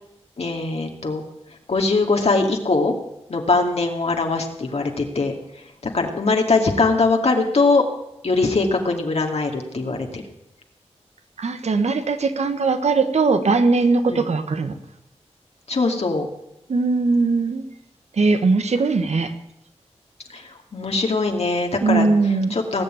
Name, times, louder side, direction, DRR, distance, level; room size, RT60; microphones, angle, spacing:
voice 1, 0.4-1.2 1.7-2.9 3.3-5.3 5.8-7.8 8.2-10.2 14.1-14.3 15.7-16.3 20.3-22.1 22.5-22.8, left 3 dB, 70° left, 2 dB, 2.4 m, -21 dB
voice 2, 11.4-14.7 16.7-17.6 18.2-19.3 21.8-22.6, right 4 dB, 75° right, 9 dB, 1.3 m, -20 dB
18.5 x 7.1 x 9.2 m, 0.86 s
cardioid pair, 45°, 11 cm